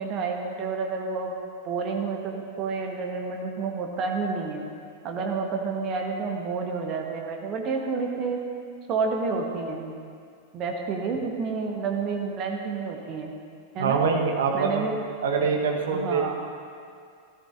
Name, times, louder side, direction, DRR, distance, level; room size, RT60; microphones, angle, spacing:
voice 1, 0.0-1.4 1.6-4.6 5.0-8.4 8.9-9.9 10.5-13.3 13.7-14.0 14.5-14.9 15.4-15.5 15.9-16.4, right 4 dB, 35° right, 1 dB, 1.3 m, -29 dB
voice 2, 13.8-14.9 15.2-16.4, right 5 dB, 60° right, 2 dB, 1.2 m, -24 dB
14.0 x 13.5 x 2.6 m, 2.2 s
figure-of-eight pair, 90°, 0 cm